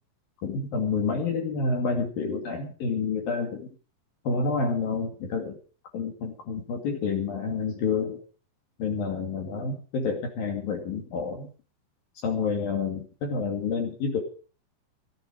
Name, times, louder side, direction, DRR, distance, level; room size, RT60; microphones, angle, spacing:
voice 1, 0.4-3.7 4.3-5.6 5.9-8.2 8.8-11.5 12.2-14.2, left 4 dB, 55° left, 2 dB, 3.9 m, -29 dB
16.5 x 14.5 x 5.1 m, 0.39 s
omnidirectional pair, 5.2 m